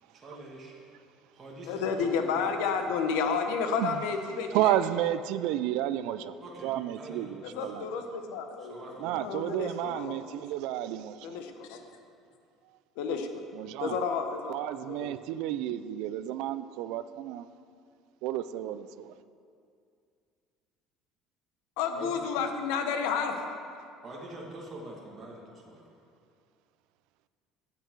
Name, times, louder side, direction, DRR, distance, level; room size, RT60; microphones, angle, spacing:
voice 1, 0.1-0.7 1.3-2.9 6.4-8.0 8.6-9.5 21.9-22.3 24.0-25.8, right 1 dB, 25° right, -4 dB, 1.8 m, -45 dB
voice 2, 1.7-4.7 7.5-8.8 9.2-10.2 11.2-11.4 13.0-13.3 13.8-14.6 14.9-15.1 21.8-23.6, left 5 dB, 85° left, 5 dB, 1.2 m, -30 dB
voice 3, 4.5-7.8 9.0-11.2 13.5-14.0 14.5-17.5 18.2-19.1, right 12 dB, 75° right, 13 dB, 0.4 m, -31 dB
13.5 x 8.8 x 4.6 m, 2.4 s
cardioid pair, 145°, 0 cm